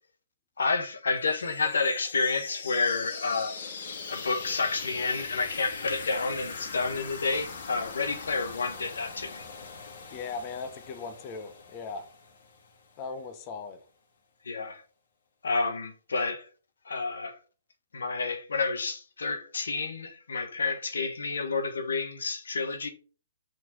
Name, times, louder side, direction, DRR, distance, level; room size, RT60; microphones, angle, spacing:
voice 1, 0.6-3.5 4.1-9.4 14.4-14.8 15.4-16.5 16.8-17.4 17.9-22.9, left 4 dB, 80° left, 1.4 m, -30 dB
sound 1, 1.3-13.0, left 5 dB, 60° left, 1.9 m, -41 dB
voice 2, 10.1-12.1 13.0-13.8, left 4 dB, 30° left, 1.1 m, -38 dB
6.0 x 4.5 x 5.4 m
hypercardioid pair, 140°, 0 cm